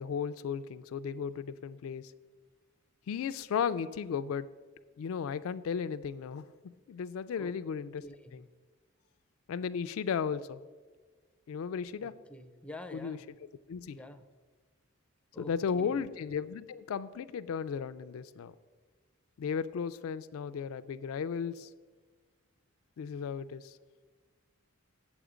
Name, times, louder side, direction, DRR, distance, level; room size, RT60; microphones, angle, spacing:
voice 1, 0.0-2.1 3.1-4.5 5.0-6.4 6.9-8.0 8.3-8.4 9.5-10.6 11.5-12.1 12.9-13.2 13.7-14.0 15.4-18.5 19.4-21.7 23.0-23.8, left 6 dB, 75° left, 12 dB, 0.3 m, -35 dB
voice 2, 8.0-8.4 12.0-13.3 13.9-14.3 15.3-16.0, left 1 dB, 5° left, 8 dB, 0.4 m, -47 dB
8.1 x 7.2 x 5.0 m, 1.4 s
head